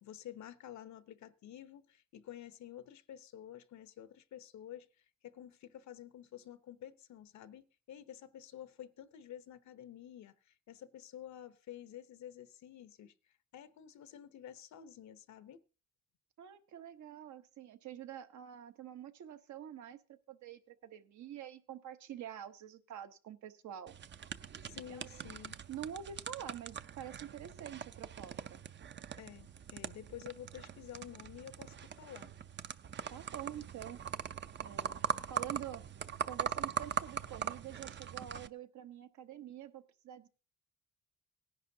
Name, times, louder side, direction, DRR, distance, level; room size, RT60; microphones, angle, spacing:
voice 1, 0.0-13.1 13.5-15.6 24.7-25.6 29.2-32.3, left 11 dB, 70° left, 0.8 m, -50 dB
voice 2, 16.4-20.0 20.3-23.9 24.9-25.3 25.7-28.6 33.1-34.0 34.6-35.0 35.3-35.9 36.2-40.3, right 10 dB, 70° right, 1.0 m, -47 dB
sound 1, 23.9-38.5, right 8 dB, 40° right, 0.5 m, -41 dB
17.5 x 10.5 x 2.7 m
cardioid pair, 90°, 30 cm